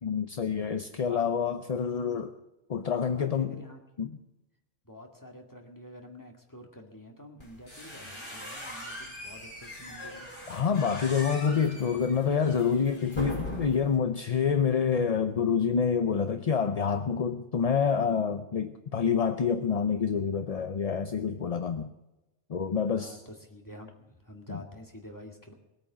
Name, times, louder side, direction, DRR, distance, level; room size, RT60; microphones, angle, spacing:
voice 1, 0.0-2.3 2.7-3.6 4.0-4.2 10.5-21.9 22.5-23.2 24.5-24.6, left 6 dB, 40° left, 8 dB, 0.6 m, -27 dB
voice 2, 3.1-3.8 4.9-10.3 22.9-25.5, equal, 15° left, 2 dB, 2.1 m, -48 dB
sound 1, 7.4-14.0, left 1 dB, 60° left, 6.2 m, -41 dB
20.5 x 8.9 x 7.2 m, 0.98 s
omnidirectional pair, 1.2 m